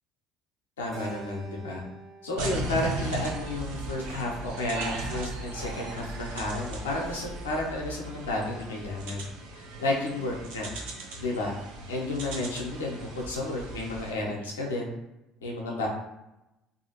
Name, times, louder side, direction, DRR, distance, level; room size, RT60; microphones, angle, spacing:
voice 1, 0.8-1.8 2.2-9.2 9.8-10.7 11.2-11.5 11.9-14.9 15.4-15.9, left 2 dB, 80° left, -1 dB, 0.6 m, -32 dB
Keyboard (musical), 0.9-5.3, right 4 dB, 45° right, 1.0 m, -49 dB
sound 1, 2.4-14.1, right 2 dB, 70° right, 0.6 m, -37 dB
2.6 x 2.4 x 2.8 m, 0.93 s
figure-of-eight pair, 60°, 0 cm